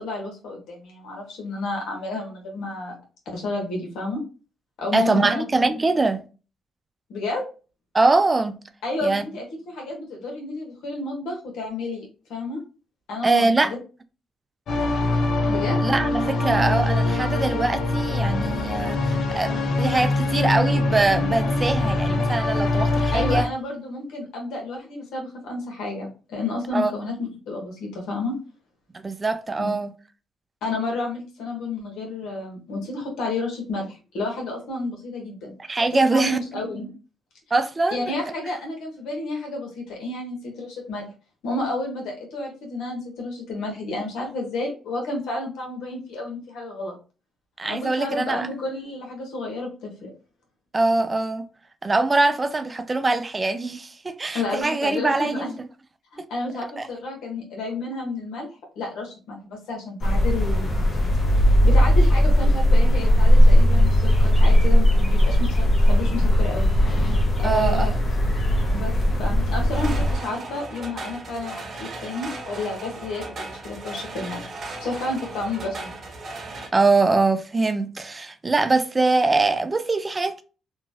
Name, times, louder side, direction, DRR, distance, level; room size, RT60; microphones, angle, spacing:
voice 1, 0.0-3.0 3.3-4.2 4.8-5.4 7.1-7.5 8.8-12.6 13.1-13.8 15.5-15.8 23.1-28.4 29.6-29.7 30.6-35.5 35.9-36.9 37.9-41.1 41.4-46.9 47.7-50.1 54.3-55.5 56.1-58.5 58.7-60.8 61.5-66.7 67.4-68.0 68.7-74.4 74.8-75.9, left 2 dB, 80° left, 1.2 m, -31 dB
voice 2, 4.9-6.2 7.9-8.6 9.0-9.3 13.2-13.7 15.8-23.5 26.7-26.9 28.9-29.9 35.6-36.4 37.5-38.0 47.6-48.5 50.7-51.5 51.8-55.7 56.8-56.9 67.4-67.9 76.7-80.4, right 3 dB, 25° right, 0.4 m, -23 dB
sound 1, 14.7-23.4, left 2 dB, 65° left, 0.6 m, -23 dB
sound 2, 60.0-70.2, equal, 30° left, 0.8 m, -18 dB
sound 3, 69.7-76.7, right 2 dB, 50° right, 0.7 m, -36 dB
3.0 x 2.4 x 2.6 m
cardioid pair, 90°, 0 cm